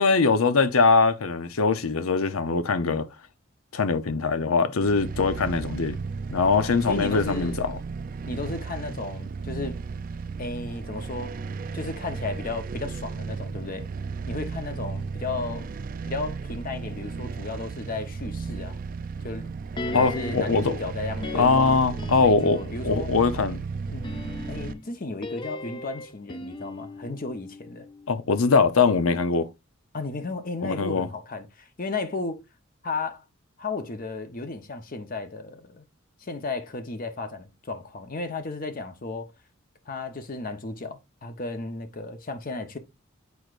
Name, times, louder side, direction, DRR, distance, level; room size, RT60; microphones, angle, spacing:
voice 1, 0.0-3.1 3.7-6.0 6.3-7.8 19.9-20.8 21.3-23.6 28.1-29.5 30.6-31.1, left 4 dB, 90° left, 0.7 m, -22 dB
sound 1, 4.8-24.7, right 4 dB, 40° right, 0.4 m, -35 dB
voice 2, 6.6-7.6 8.3-9.8 10.4-11.3 11.7-13.9 14.3-15.7 16.1-18.8 19.2-19.5 19.9-21.8 22.2-23.1 23.9-24.1 24.5-27.9 29.9-32.4 32.8-33.2 33.6-35.8 36.2-39.3 39.9-42.8, left 3 dB, 40° left, 0.8 m, -34 dB
sound 2, 19.8-20.6 21.2-22.9 23.9-28.1 28.4-28.5, left 2 dB, 25° left, 0.5 m, -37 dB
8.3 x 4.7 x 2.5 m
head